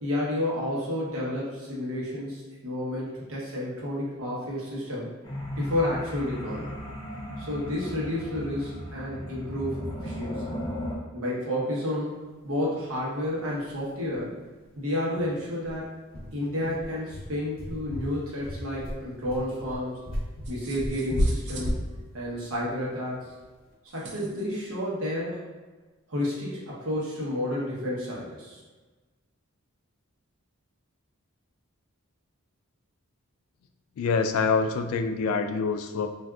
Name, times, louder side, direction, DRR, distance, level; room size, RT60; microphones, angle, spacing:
voice 1, 0.0-5.1 5.6-6.7 7.4-10.5 11.1-12.1 12.4-14.3 14.8-15.9 16.3-20.0 20.5-21.8 22.1-23.3 23.9-25.5 26.1-28.6, left 1 dB, 75° right, -5 dB, 1.0 m, -31 dB
sound 1, 5.2-11.0, equal, 20° left, 0.4 m, -36 dB
sound 2, 13.3-13.4 13.7-13.8 14.1-14.2 14.6-14.7 15.2-23.6, equal, 45° left, 0.7 m, -32 dB
sound 3, 20.4-21.8 23.9-24.5, right 4 dB, 55° right, 0.4 m, -45 dB
voice 2, 34.0-36.1, left 5 dB, 80° left, 11 dB, 0.3 m, -25 dB
3.5 x 2.5 x 2.3 m, 1.3 s
head